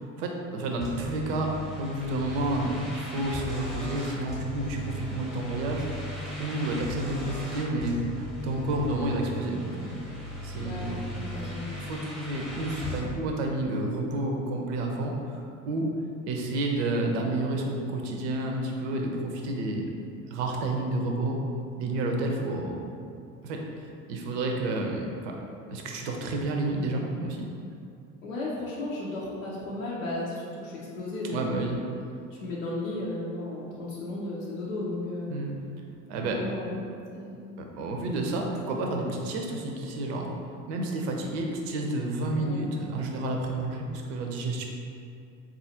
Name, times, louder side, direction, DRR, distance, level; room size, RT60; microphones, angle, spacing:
voice 1, 0.0-6.1 6.4-10.0 10.4-11.0 11.7-15.9 16.3-19.9 20.3-21.4 21.8-22.8 23.4-23.6 24.1-25.4 25.7-27.5 31.3-31.8 35.3-35.6 36.1-36.4 37.6-40.3 40.7-44.6, right 2 dB, 60° right, 1 dB, 0.6 m, -30 dB
sound 1, 0.8-13.0, equal, ahead, 0.9 m, -37 dB
voice 2, 10.6-11.7 28.2-31.7 32.3-35.3 36.3-36.7 37.1-37.4 42.4-42.7, left 2 dB, 75° left, -6 dB, 0.7 m, -34 dB
3.9 x 2.4 x 2.8 m, 2.5 s
figure-of-eight pair, 70°, 40 cm